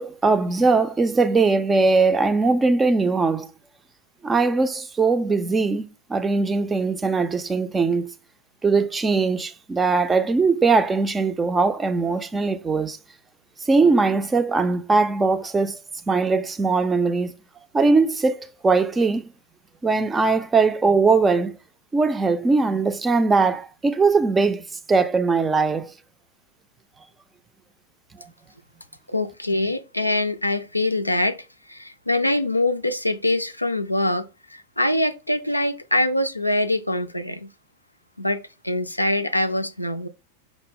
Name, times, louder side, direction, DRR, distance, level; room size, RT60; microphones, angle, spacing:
voice 1, 0.0-3.5 4.2-8.1 8.6-13.0 13.6-15.8 16.1-17.3 17.7-19.3 19.8-21.6 21.9-25.9, right 4 dB, 15° right, 0.4 m, -20 dB
voice 2, 29.1-31.4 31.7-37.5 38.2-40.1, left 1 dB, 85° left, 0.4 m, -24 dB
6.0 x 2.0 x 3.6 m
figure-of-eight pair, 90°, 0 cm